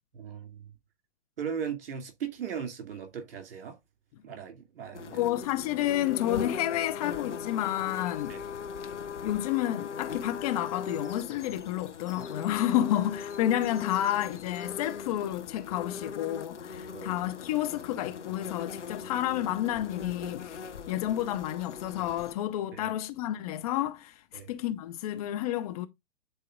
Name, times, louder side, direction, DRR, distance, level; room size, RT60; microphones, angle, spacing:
voice 1, 0.1-0.6 1.4-3.8 4.2-5.2 8.3-8.4 16.9-17.1 22.7-22.9 24.3-24.5, right 7 dB, 50° right, 2.6 m, -38 dB
sound 1, 4.9-22.4, left 6 dB, 75° left, 0.7 m, -40 dB
voice 2, 5.1-8.5 9.2-25.9, left 13 dB, 30° left, 0.6 m, -30 dB
10.0 x 4.0 x 2.4 m
figure-of-eight pair, 105°, 35 cm